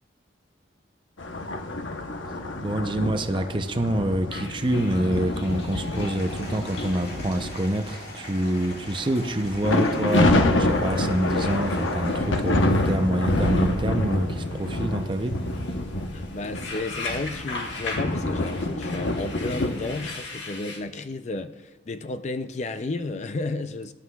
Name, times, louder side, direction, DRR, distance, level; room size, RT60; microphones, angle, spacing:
sound 1, 1.2-7.9 8.4-20.1, left 1 dB, 90° left, 0.9 m, -27 dB
voice 1, 2.6-15.4, right 1 dB, 25° right, 7 dB, 0.6 m, -26 dB
sound 2, 4.3-20.8, left 3 dB, 75° left, 1.4 m, -41 dB
Applause / Crowd, 5.3-13.5, left 1 dB, 55° left, 2.1 m, -43 dB
voice 2, 16.1-23.9, left 2 dB, 35° left, 9 dB, 0.4 m, -32 dB
18.0 x 11.5 x 2.3 m, 1.1 s
head